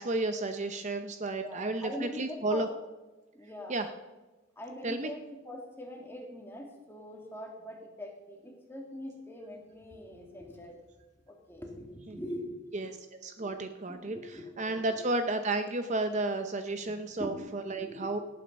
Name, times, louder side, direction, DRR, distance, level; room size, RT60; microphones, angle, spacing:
voice 1, 0.0-2.7 3.7-3.9 4.8-5.1 12.1-12.2 12.7-13.0 13.2-18.2, right 2 dB, 35° right, 7 dB, 0.6 m, -32 dB
voice 2, 1.4-2.7 3.3-3.8 4.6-10.8 11.3-12.5 13.4-13.6 13.9-15.0 17.2-17.3 17.7-18.1, left 1 dB, 10° left, 1 dB, 2.2 m, -42 dB
18.0 x 8.7 x 5.3 m, 1.2 s
head